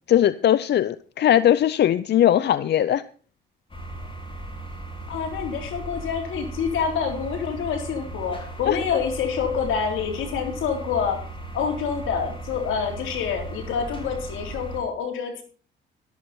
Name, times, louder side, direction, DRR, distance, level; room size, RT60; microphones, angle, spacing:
voice 1, 0.1-3.0 8.7-8.8, left 11 dB, 60° left, 0.6 m, -19 dB
sound 1, 3.7-14.8, right 2 dB, 25° left, 5.2 m, -37 dB
voice 2, 5.1-11.2 11.5-15.4, left 6 dB, 85° left, 3.7 m, -27 dB
13.0 x 12.5 x 4.3 m
cardioid pair, 90°, 20 cm